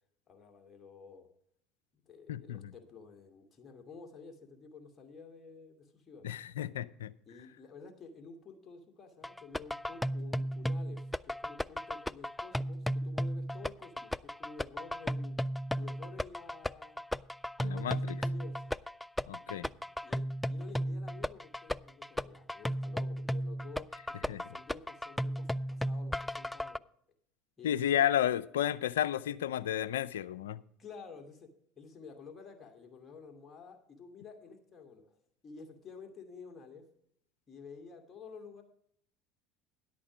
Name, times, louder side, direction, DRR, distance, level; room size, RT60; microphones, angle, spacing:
voice 1, 0.3-1.3 1.9-6.3 7.2-15.4 15.8-17.0 17.6-18.6 19.5-26.8 27.6-28.0 30.8-35.2 35.4-36.8 37.5-38.6, left 5 dB, 30° left, 2.5 m, -51 dB
voice 2, 2.3-2.7 6.2-7.1 17.6-18.2 19.3-19.7 24.3-24.4 27.6-30.6, left 10 dB, 85° left, 0.4 m, -32 dB
sound 1, 9.2-26.8, equal, 5° left, 0.3 m, -35 dB
11.0 x 8.6 x 5.1 m
hypercardioid pair, 75°, 0 cm